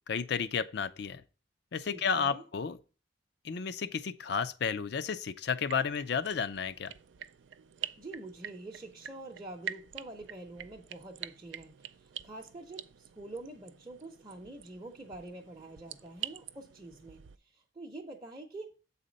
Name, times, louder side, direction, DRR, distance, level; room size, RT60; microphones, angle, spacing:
voice 1, 0.1-1.2 1.7-2.8 3.4-6.9, left 6 dB, 60° left, 0.4 m, -32 dB
voice 2, 1.9-2.5 8.0-18.7, right 2 dB, 20° right, 0.7 m, -46 dB
sound 1, 5.6-17.3, right 10 dB, 80° right, 0.4 m, -46 dB
7.5 x 4.1 x 5.1 m
head